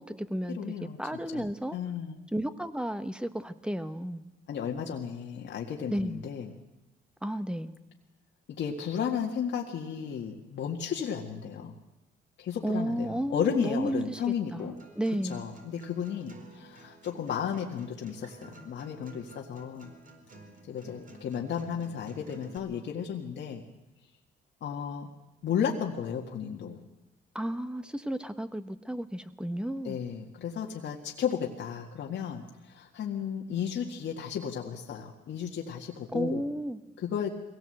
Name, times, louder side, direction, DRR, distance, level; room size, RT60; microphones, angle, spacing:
voice 1, 0.0-1.8 2.3-4.2 5.9-6.2 7.2-7.7 12.6-15.4 27.3-30.0 36.1-36.8, right 1 dB, 5° right, 11 dB, 1.2 m, -33 dB
voice 2, 0.6-1.0 1.3-1.5 1.7-2.1 4.5-6.5 8.6-11.7 12.4-14.8 15.3-19.9 20.7-23.6 24.6-25.1 25.4-26.8 29.8-36.4 37.0-37.3, left 8 dB, 65° left, 0 dB, 1.9 m, -33 dB
Acoustic guitar, 14.6-22.6, right 3 dB, 45° right, 4.3 m, -53 dB
22.5 x 17.5 x 7.9 m, 0.94 s
cardioid pair, 90°, 20 cm